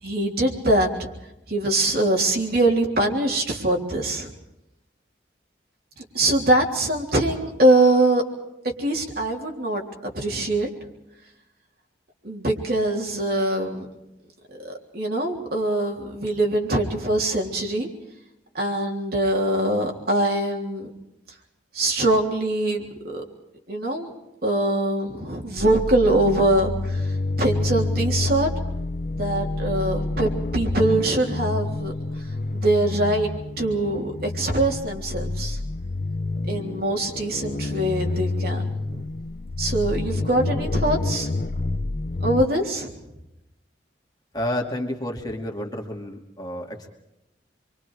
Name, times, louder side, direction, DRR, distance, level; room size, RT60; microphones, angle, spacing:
voice 1, 0.0-1.1 1.5-4.3 6.0-8.2 8.6-10.7 12.2-13.9 14.6-17.9 18.5-20.9 21.7-23.2 23.7-24.1 24.4-28.5 29.1-32.2 32.5-33.3 33.6-35.6 36.4-39.1 39.6-41.3 42.2-42.9, right 1 dB, 55° right, 1 dB, 3.5 m, -23 dB
sound 1, 25.6-42.5, left 2 dB, 45° left, 0.7 m, -28 dB
voice 2, 44.3-46.9, left 1 dB, 20° left, 1 dB, 2.4 m, -30 dB
28.0 x 24.0 x 4.9 m, 0.91 s
head